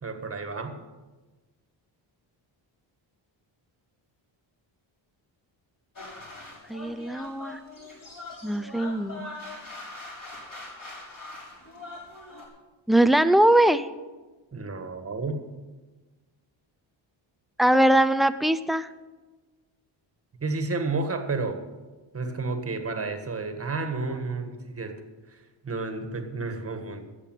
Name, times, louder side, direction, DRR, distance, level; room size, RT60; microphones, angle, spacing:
voice 1, 0.0-0.8 14.5-15.4 20.4-21.6 22.1-25.0 25.6-27.0, right 3 dB, 30° right, 6 dB, 1.7 m, -31 dB
sound 1, 6.0-12.5, left 2 dB, 45° left, 6.3 m, -42 dB
voice 2, 6.7-7.6 8.4-9.4 12.9-13.9 17.6-18.9, right 1 dB, ahead, 12 dB, 0.3 m, -21 dB
14.0 x 8.4 x 9.1 m, 1.2 s
wide cardioid pair, 155°, 47 cm